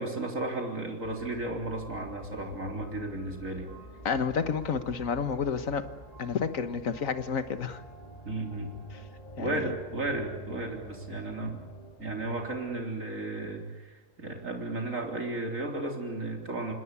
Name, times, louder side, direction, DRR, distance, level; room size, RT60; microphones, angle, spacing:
voice 1, 0.0-3.7 8.3-8.7 9.4-11.6 12.0-16.7, right 2 dB, 90° right, 2 dB, 4.1 m, -34 dB
sound 1, 1.0-12.8, right 1 dB, 30° left, 2.7 m, -47 dB
voice 2, 4.1-5.9 6.2-7.8 8.9-9.0 9.4-9.7, left 6 dB, 85° left, 10 dB, 1.7 m, -30 dB
27.0 x 20.0 x 8.4 m, 1.2 s
omnidirectional pair, 1.3 m